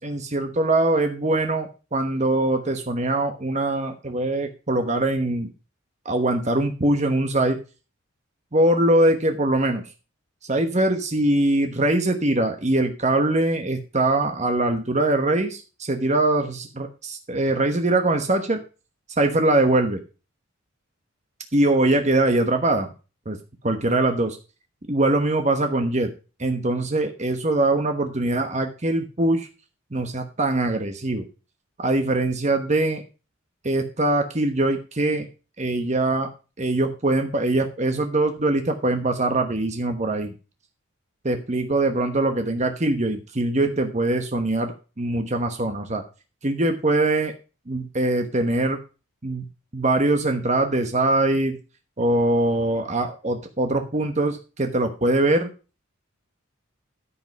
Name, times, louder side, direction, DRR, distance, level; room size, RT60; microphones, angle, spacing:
voice 1, 0.0-5.5 6.0-7.6 8.5-9.9 10.5-18.6 19.2-20.0 21.5-22.9 23.3-23.4 23.6-24.4 24.9-26.1 26.4-29.5 29.9-31.3 31.8-33.0 33.6-35.3 35.6-36.3 36.6-40.3 41.2-46.0 46.4-47.3 47.7-48.8 49.2-49.4 49.7-51.6 52.0-55.5, right 2 dB, 35° right, 5 dB, 1.1 m, -22 dB
13.0 x 5.4 x 5.3 m, 0.32 s
head